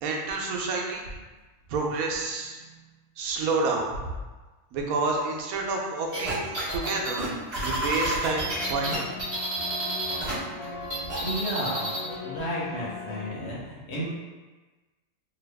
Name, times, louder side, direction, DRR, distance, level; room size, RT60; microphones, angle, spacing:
voice 1, 0.0-1.1 1.7-2.6 3.2-4.1 4.7-7.3 7.6-9.1, right 3 dB, 90° right, 0 dB, 1.0 m, -29 dB
sound 1, 6.1-10.3 10.6-12.0, right 1 dB, 30° right, 1.1 m, -30 dB
sound 2, 8.3-13.3, left 4 dB, 85° left, 1.2 m, -39 dB
voice 2, 11.2-11.9 12.2-14.0, equal, 55° left, -7 dB, 1.1 m, -32 dB
2.9 x 2.3 x 3.3 m, 1.2 s
omnidirectional pair, 1.5 m